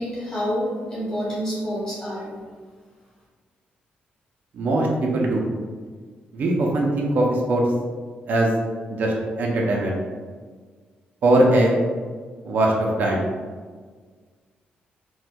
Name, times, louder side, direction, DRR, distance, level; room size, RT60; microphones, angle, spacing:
voice 1, 0.0-2.3, equal, 25° left, -8 dB, 1.4 m, -28 dB
voice 2, 4.5-5.4 6.3-7.6 8.3-8.5 8.9-10.0 11.2-11.8 12.4-13.3, right 1 dB, 55° right, -2 dB, 0.5 m, -21 dB
4.2 x 2.2 x 2.2 m, 1.5 s
wide cardioid pair, 170°, 3 cm